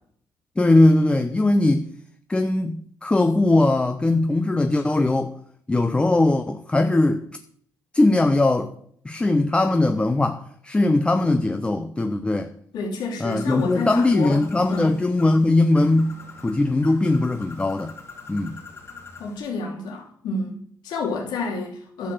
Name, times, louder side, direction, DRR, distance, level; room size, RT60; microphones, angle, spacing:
voice 1, 0.6-1.9 2.3-5.3 5.7-7.2 7.9-8.7 9.0-12.5 13.2-17.9 18.3-18.6, left 2 dB, 15° left, 0.7 m, -20 dB
voice 2, 12.7-14.4 14.7-14.9 19.2-22.1, left 3 dB, 80° left, 3.2 m, -30 dB
Bird, 13.3-19.4, left 4 dB, 35° left, 2.5 m, -44 dB
11.5 x 6.5 x 7.8 m
cardioid pair, 115°, 7 cm